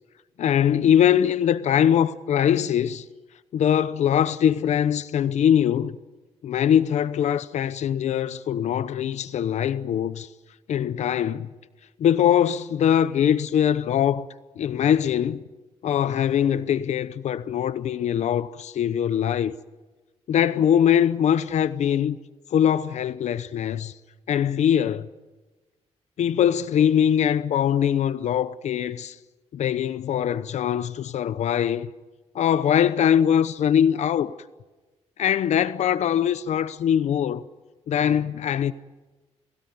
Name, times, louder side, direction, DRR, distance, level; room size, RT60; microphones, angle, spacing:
voice 1, 0.4-3.0 3.5-6.0 6.4-10.3 10.7-11.5 12.0-14.3 14.6-15.4 15.8-19.6 20.3-22.2 22.5-23.9 24.3-25.1 26.2-29.2 29.5-31.9 32.3-34.3 35.2-37.4 37.9-38.7, left 9 dB, 80° left, 0.8 m, -22 dB
29.0 x 17.5 x 9.5 m
cardioid pair, 95°, 12 cm